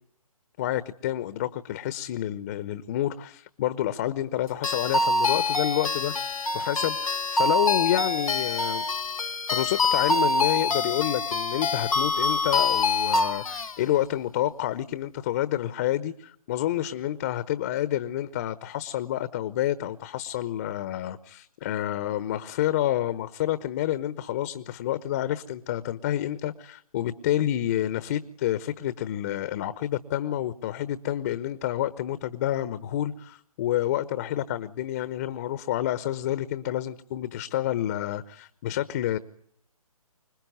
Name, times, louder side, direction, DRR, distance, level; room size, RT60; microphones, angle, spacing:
voice 1, 0.6-7.0 7.3-8.8 9.5-39.2, left 12 dB, 25° left, 15 dB, 1.0 m, -29 dB
sound 1, 4.6-13.7, left 3 dB, 70° left, 1.6 m, -25 dB
26.0 x 21.5 x 9.4 m, 0.65 s
figure-of-eight pair, 140°, 19 cm